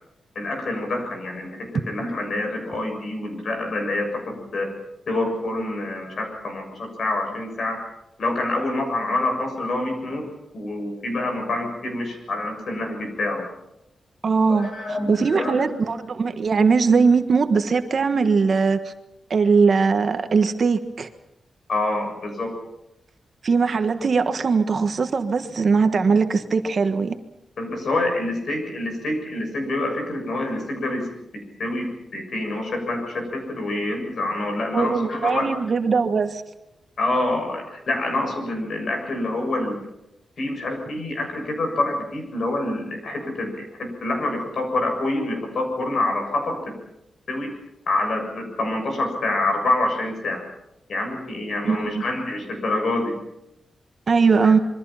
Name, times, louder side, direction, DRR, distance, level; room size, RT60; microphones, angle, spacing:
voice 1, 0.3-4.7 5.1-7.8 8.2-10.3 10.5-13.4 14.5-15.6 21.7-22.5 27.6-31.1 31.6-31.9 32.1-35.5 37.0-39.8 40.4-46.6 47.3-47.5 47.9-50.4 50.9-53.1 54.4-54.5, left 2 dB, 55° left, 4 dB, 6.9 m, -26 dB
voice 2, 14.2-18.9 19.3-21.1 23.4-27.1 34.7-36.4 51.6-52.0 54.1-54.6, right 5 dB, 45° right, 8 dB, 1.4 m, -20 dB
26.5 x 23.5 x 5.8 m, 0.92 s
wide cardioid pair, 160°, 0 cm